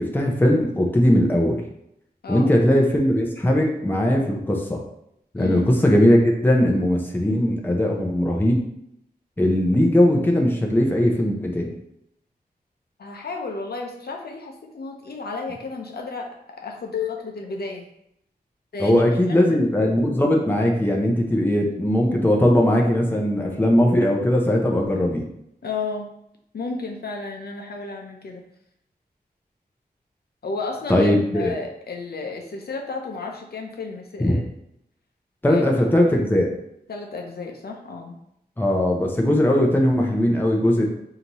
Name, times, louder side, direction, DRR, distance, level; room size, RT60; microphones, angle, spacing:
voice 1, 0.0-1.6 2.3-4.8 5.3-8.6 9.4-11.7 18.8-25.3 30.9-31.6 34.2-34.3 35.4-36.5 38.6-40.9, left 1 dB, 10° left, 0 dB, 0.7 m, -19 dB
voice 2, 5.4-5.8 13.0-17.9 18.7-19.6 25.6-26.1 26.5-28.4 30.4-34.4 35.5-35.9 36.9-38.2, left 4 dB, 70° left, 1 dB, 0.6 m, -32 dB
5.0 x 2.7 x 2.9 m, 0.78 s
wide cardioid pair, 105°, 17 cm